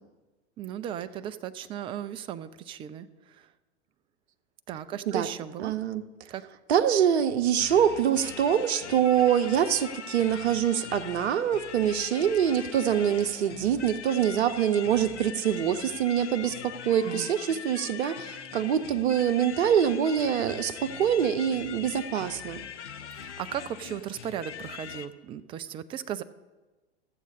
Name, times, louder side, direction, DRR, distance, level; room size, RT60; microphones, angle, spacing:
voice 1, 0.6-3.5 4.7-5.7 6.3-6.4 17.0-17.3 23.1-26.2, right 10 dB, 15° right, 11 dB, 0.3 m, -36 dB
voice 2, 5.6-6.0 6.7-22.6, right 9 dB, 70° right, 8 dB, 0.8 m, -25 dB
sound 1, 7.6-25.1, left 8 dB, 80° left, 0.8 m, -42 dB
14.5 x 7.4 x 4.2 m, 1.2 s
figure-of-eight pair, 95°, 35 cm